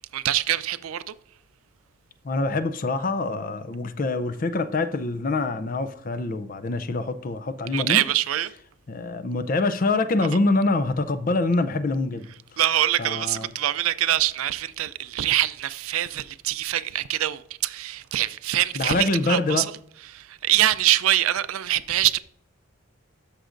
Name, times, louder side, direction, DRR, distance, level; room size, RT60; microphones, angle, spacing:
voice 1, 0.1-1.1 7.7-8.5 12.6-19.7 20.1-22.2, right 13 dB, 80° right, 0.4 m, -24 dB
voice 2, 2.2-8.0 8.9-12.3 13.0-13.5 18.8-19.7, left 2 dB, 40° left, 0.5 m, -25 dB
13.0 x 6.5 x 2.5 m
head